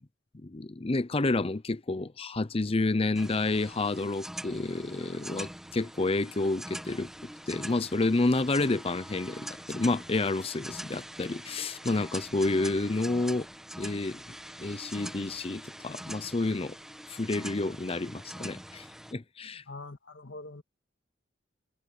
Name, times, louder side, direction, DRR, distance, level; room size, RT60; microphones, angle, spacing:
voice 1, 0.4-7.1 7.5-13.5 13.8-14.2 14.6-16.8 17.1-19.6, left 2 dB, 30° left, 0.7 m, -29 dB
sound 1, 3.1-19.1, equal, 5° right, 1.4 m, -44 dB
voice 2, 19.7-20.6, left 2 dB, 75° left, 2.0 m, -43 dB
head